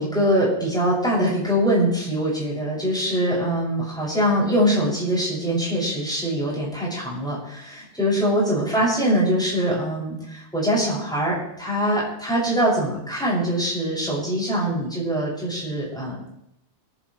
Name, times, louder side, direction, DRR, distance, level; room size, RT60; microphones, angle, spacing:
voice 1, 0.0-16.2, equal, 5° left, -7 dB, 6.9 m, -23 dB
25.0 x 15.0 x 3.3 m, 0.81 s
omnidirectional pair, 1.2 m